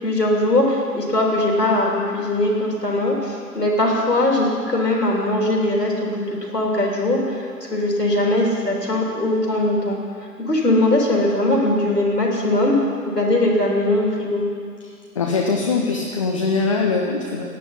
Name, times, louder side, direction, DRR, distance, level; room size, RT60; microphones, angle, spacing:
voice 1, 0.0-10.0 10.5-12.7 13.1-14.4, left 1 dB, 80° left, -2 dB, 3.3 m, -20 dB
voice 2, 15.2-17.4, left 4 dB, 20° left, 0 dB, 0.6 m, -22 dB
17.0 x 11.0 x 4.3 m, 2.2 s
figure-of-eight pair, 125°, 48 cm